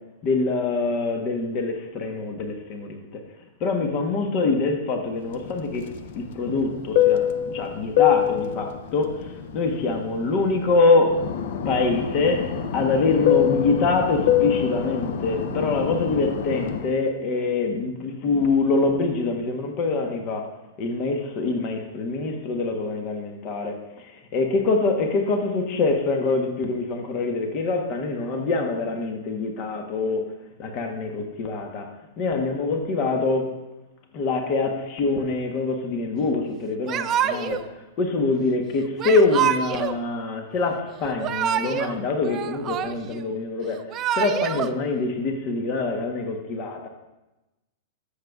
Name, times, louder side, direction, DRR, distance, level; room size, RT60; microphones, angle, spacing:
voice 1, 0.2-3.2 3.6-5.9 6.1-11.3 11.6-30.3 30.6-31.9 32.2-33.5 34.1-46.9, left 3 dB, 35° left, 4 dB, 1.0 m, -25 dB
Fixed-wing aircraft airplane, 5.4-10.7 11.1-16.9, left 10 dB, 60° left, 0.6 m, -25 dB
Yell / Crying sobbing, 36.9-37.7 39.0-40.0 41.0-41.9 42.2-43.2 43.7-44.7, right 10 dB, 25° right, 0.3 m, -26 dB
13.0 x 6.6 x 2.4 m, 1.0 s
hypercardioid pair, 145°, 0 cm